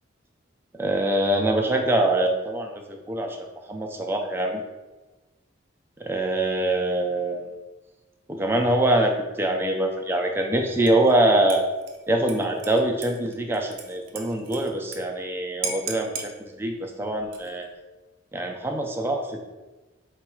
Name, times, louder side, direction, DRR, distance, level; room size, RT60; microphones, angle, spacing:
voice 1, 0.8-4.6 6.0-7.4 8.3-11.6 12.1-16.3 16.6-17.7 18.3-19.4, right 1 dB, 10° right, 2 dB, 0.3 m, -24 dB
Dishes pots and pans / Liquid, 10.9-11.2 11.5-15.0 15.3-15.4 15.6-16.3 17.2-17.7, right 5 dB, 75° right, 0.6 m, -36 dB
4.0 x 2.3 x 4.4 m, 1.2 s
head